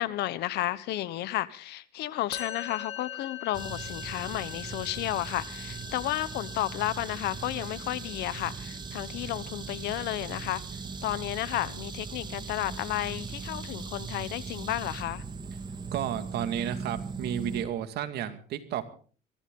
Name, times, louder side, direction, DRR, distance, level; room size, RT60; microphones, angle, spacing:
voice 1, 0.0-10.6 11.0-15.2, left 15 dB, 80° left, 1.2 m, -32 dB
Musical instrument, 2.3-9.6, left 11 dB, 40° left, 2.4 m, -44 dB
sound 1, 3.5-17.6, right 5 dB, 25° right, 1.9 m, -39 dB
voice 2, 15.9-18.8, right 10 dB, 75° right, 2.2 m, -32 dB
22.5 x 14.5 x 3.9 m
cardioid pair, 110°, 17 cm